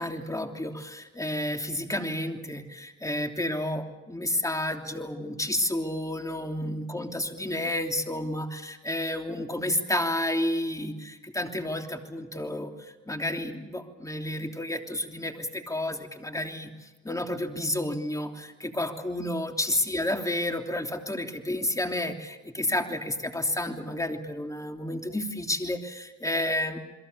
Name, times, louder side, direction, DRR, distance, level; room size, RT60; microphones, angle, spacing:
voice 1, 0.0-26.8, left 1 dB, 10° left, 4 dB, 3.0 m, -31 dB
29.0 x 22.0 x 6.9 m, 1.2 s
cardioid pair, 90°, 30 cm